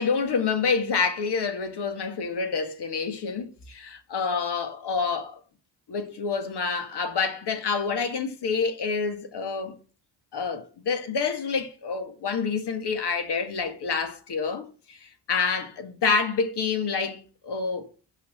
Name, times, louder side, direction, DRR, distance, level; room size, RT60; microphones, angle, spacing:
voice 1, 0.0-5.4 5.9-9.8 10.3-17.9, left 5 dB, 55° left, 1.9 m, -28 dB
6.8 x 5.8 x 6.5 m
supercardioid pair, 55°, 48 cm